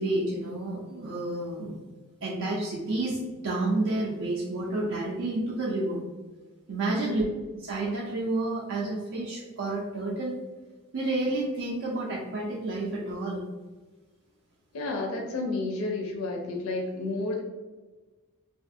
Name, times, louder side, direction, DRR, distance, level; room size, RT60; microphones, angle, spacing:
voice 1, 0.0-1.8 2.2-3.2 3.4-6.0 6.7-7.2 7.6-10.4 10.9-13.4, right 2 dB, 60° right, -4 dB, 0.4 m, -30 dB
voice 2, 6.9-7.3 14.7-17.4, left 2 dB, 65° left, 0 dB, 0.4 m, -31 dB
2.5 x 2.4 x 2.5 m, 1.3 s
head